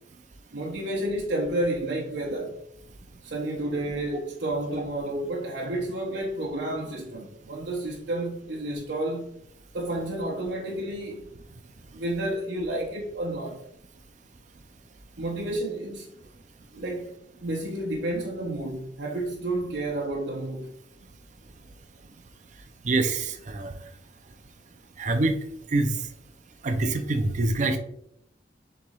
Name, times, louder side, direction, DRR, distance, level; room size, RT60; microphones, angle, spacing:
voice 1, 0.5-2.6 3.2-9.4 9.7-11.3 11.9-13.6 15.2-16.1 16.7-17.1 17.4-20.7, right 1 dB, 80° right, 0.7 m, -30 dB
voice 2, 22.8-23.7 25.0-25.4 25.7-25.9 26.6-27.8, right 2 dB, 45° right, 0.5 m, -25 dB
6.7 x 3.1 x 2.3 m
head